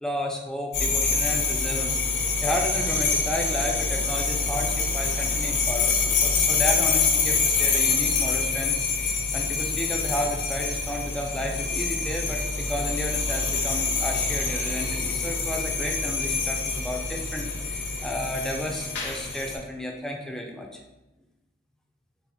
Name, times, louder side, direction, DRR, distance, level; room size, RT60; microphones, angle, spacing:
voice 1, 0.0-2.0 2.4-8.8 9.3-20.8, left 1 dB, 5° left, 1 dB, 0.4 m, -32 dB
sound 1, 0.7-19.6, left 4 dB, 70° left, 0.9 m, -26 dB
4.1 x 2.4 x 4.0 m, 1.0 s
head